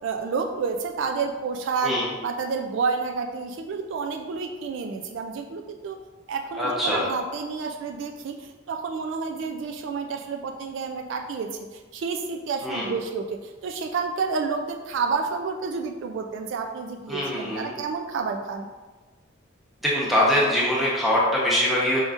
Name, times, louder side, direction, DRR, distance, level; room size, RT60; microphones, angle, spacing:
voice 1, 0.0-2.0 2.2-6.0 6.3-18.7, right 5 dB, 65° right, 4 dB, 0.3 m, -30 dB
voice 2, 6.6-7.0 12.6-12.9 17.1-17.7 19.8-22.0, left 1 dB, ahead, -6 dB, 0.9 m, -23 dB
4.9 x 3.8 x 2.4 m, 1.3 s
head